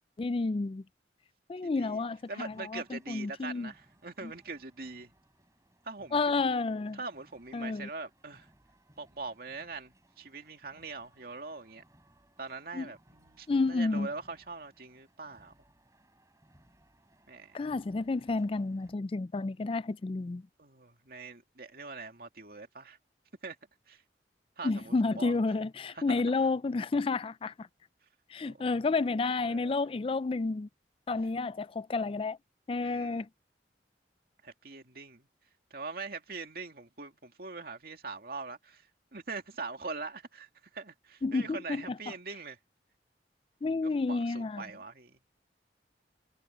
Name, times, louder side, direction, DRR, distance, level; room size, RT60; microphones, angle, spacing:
voice 1, 0.2-0.8 1.5-3.7 4.2-4.3 6.1-7.0 7.5-7.9 12.7-12.9 13.5-14.1 17.5-20.4 24.6-27.7 28.3-30.7 31.1-32.4 32.7-33.3 41.2-42.1 43.6-44.6, left 3 dB, 30° left, 0.4 m, -30 dB
voice 2, 1.6-5.1 5.8-6.2 6.9-8.5 9.0-11.8 12.4-15.5 17.3-17.6 20.6-23.0 23.4-23.6 23.9-24.0 24.6-25.4 25.9-26.2 28.4-28.8 29.4-29.7 32.8-33.3 34.4-35.3 35.7-38.9 39.1-40.5 40.7-42.6 43.8-45.2, right 4 dB, 55° right, 2.5 m, -43 dB
sound 1, 2.0-18.9, right 1 dB, 20° right, 7.1 m, -65 dB
head